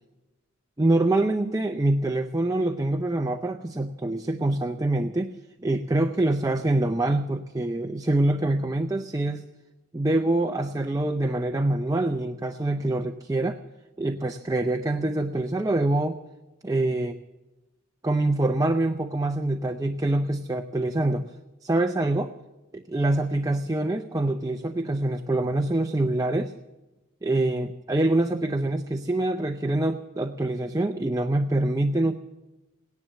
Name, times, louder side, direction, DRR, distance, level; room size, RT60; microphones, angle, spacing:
voice 1, 0.8-9.4 9.9-13.6 14.0-16.2 16.6-17.2 18.0-21.3 21.6-22.3 22.7-26.5 27.2-32.2, right 2 dB, 15° right, 6 dB, 0.5 m, -25 dB
18.5 x 10.5 x 7.5 m, 1.1 s
head